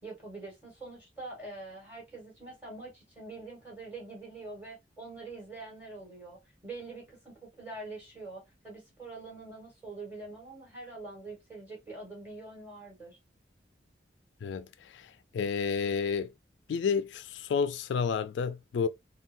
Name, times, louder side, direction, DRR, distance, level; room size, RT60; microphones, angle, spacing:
voice 1, 0.0-13.2, right 3 dB, 10° right, 1.7 m, -45 dB
voice 2, 14.4-16.3 16.7-18.9, left 6 dB, 75° left, 0.3 m, -31 dB
3.7 x 2.2 x 2.5 m
head